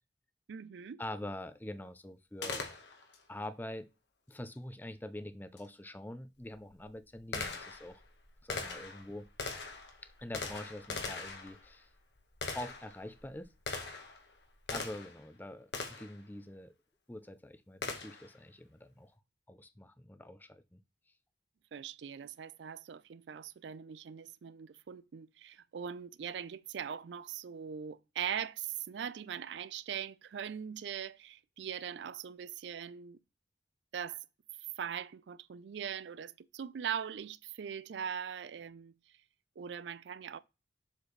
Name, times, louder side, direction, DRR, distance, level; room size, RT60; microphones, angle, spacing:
voice 1, 0.5-1.0 21.7-33.2 33.9-34.2 34.8-38.9 39.6-40.4, right 8 dB, 85° right, 0.4 m, -41 dB
voice 2, 1.0-2.7 3.3-3.9 4.3-8.0 8.4-9.3 10.0-11.9 12.5-13.5 14.7-16.7 17.1-19.1 19.5-20.8, left 1 dB, 10° left, 0.5 m, -45 dB
Gunshot gunfire, 2.4-3.2 5.6-5.7 6.4-15.2 15.7-16.2 17.8-18.3, left 4 dB, 75° left, 1.4 m, -41 dB
7.1 x 4.1 x 3.2 m
head